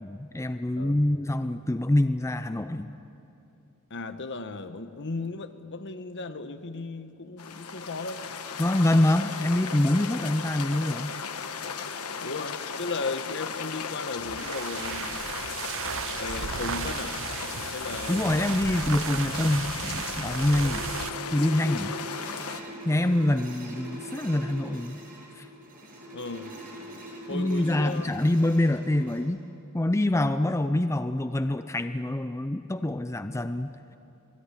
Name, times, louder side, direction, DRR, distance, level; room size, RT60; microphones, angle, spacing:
voice 1, 0.0-2.9 8.6-11.2 18.1-20.8 21.3-21.9 22.8-25.0 25.4-25.5 27.3-29.4 29.7-33.7, left 1 dB, 15° left, 10 dB, 0.5 m, -25 dB
voice 2, 3.9-8.2 12.2-15.3 16.1-17.2 17.7-18.5 20.6-20.9 21.6-22.0 26.1-26.6 27.3-28.2, left 3 dB, 55° left, 9 dB, 1.2 m, -36 dB
sound 1, 7.4-22.6, left 6 dB, 85° left, 1.3 m, -36 dB
sound 2, 14.2-21.2, right 8 dB, 65° right, 0.6 m, -35 dB
sound 3, 19.9-29.2, right 1 dB, 40° right, 6.8 m, -43 dB
26.5 x 19.0 x 10.0 m, 2.8 s
head